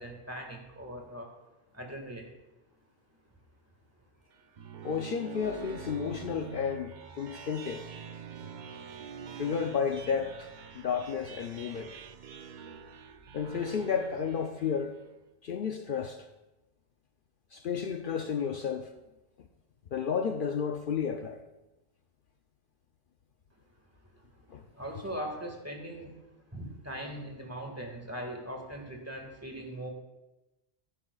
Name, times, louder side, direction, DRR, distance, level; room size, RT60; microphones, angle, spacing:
voice 1, 0.0-1.3 1.7-2.3 24.8-26.2 26.5-29.9, equal, 15° right, 1.7 m, -40 dB
sound 1, 4.3-15.2, right 6 dB, 55° right, 0.7 m, -45 dB
voice 2, 4.8-7.9 9.4-11.9 13.3-15.0 15.4-16.3 17.5-18.9 19.4-19.5 19.9-21.4 24.5-24.6, left 6 dB, 60° left, 0.7 m, -32 dB
14.0 x 11.5 x 2.3 m
omnidirectional pair, 1.1 m